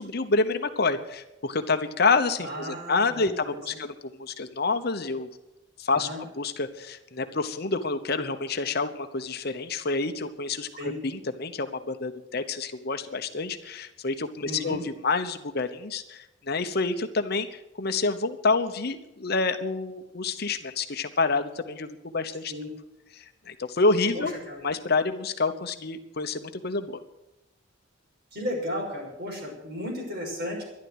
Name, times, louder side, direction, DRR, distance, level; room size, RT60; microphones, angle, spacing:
voice 1, 0.0-5.3 5.8-6.1 6.4-22.5 23.2-24.3 24.6-27.0, left 3 dB, 50° left, 8 dB, 1.0 m, -28 dB
voice 2, 2.4-3.8 5.9-6.2 10.8-11.0 14.4-14.8 22.5-22.7 24.1-24.6 28.3-30.6, left 1 dB, 55° right, -1 dB, 6.1 m, -34 dB
12.5 x 11.5 x 8.0 m, 0.93 s
head